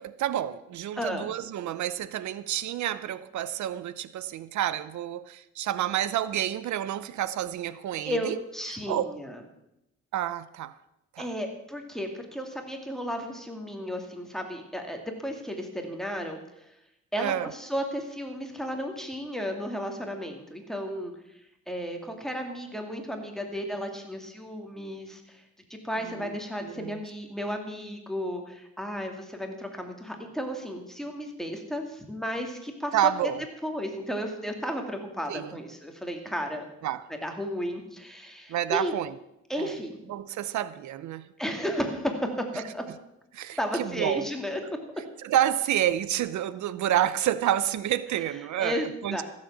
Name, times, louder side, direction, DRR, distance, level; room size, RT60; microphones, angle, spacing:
voice 1, 0.0-8.4 8.9-9.2 10.1-10.7 11.1-11.3 17.2-17.5 26.1-26.4 26.6-27.0 32.9-33.4 35.3-35.5 36.8-37.0 38.5-39.1 39.6-39.7 40.1-41.3 43.3-44.3 45.2-49.2, right 11 dB, 70° right, 0.6 m, -29 dB
voice 2, 1.0-1.3 8.0-9.4 11.2-16.7 17.1-21.1 21.7-25.4 25.7-33.1 33.6-36.7 37.2-38.9 39.5-40.0 41.4-42.8 43.6-44.6 48.6-49.2, equal, ahead, 2.3 m, -33 dB
15.0 x 7.5 x 7.3 m
cardioid pair, 90°, 30 cm